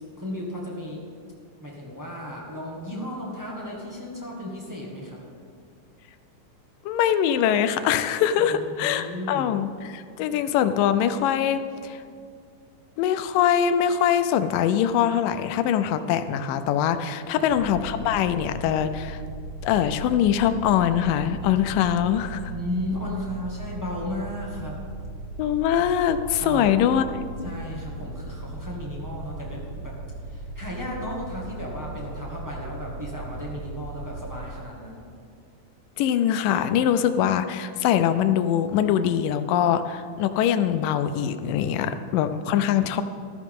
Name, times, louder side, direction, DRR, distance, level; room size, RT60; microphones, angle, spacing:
voice 1, 0.2-1.0 1.6-5.2 8.4-8.5 8.8-9.5 17.3-17.5 22.5-24.8 26.4-26.8 27.4-29.9 30.3-35.1, left 1 dB, 20° right, -4 dB, 0.5 m, -34 dB
voice 2, 6.9-12.0 13.0-19.2 19.6-22.4 25.4-27.0 36.0-43.0, left 9 dB, 90° left, 10 dB, 2.3 m, -23 dB
sound 1, 17.5-34.5, right 2 dB, 65° right, 2.1 m, -38 dB
14.0 x 13.5 x 3.7 m, 2.2 s
omnidirectional pair, 3.8 m